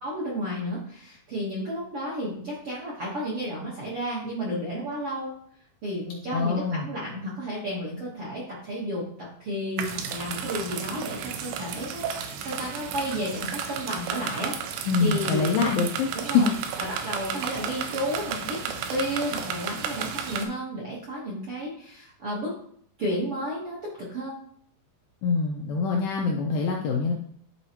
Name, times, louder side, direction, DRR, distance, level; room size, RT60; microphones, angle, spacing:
voice 1, 0.0-5.3 5.8-9.0 9.4-14.5 15.0-15.4 16.1-22.5 23.0-24.3, equal, 60° right, -7 dB, 1.5 m, -32 dB
voice 2, 6.3-6.9 14.9-16.5 25.2-27.1, left 5 dB, 85° left, 0 dB, 2.1 m, -25 dB
sound 1, 9.8-20.5, right 7 dB, 80° right, 2.6 m, -33 dB
11.0 x 4.0 x 3.0 m, 0.64 s
omnidirectional pair, 4.8 m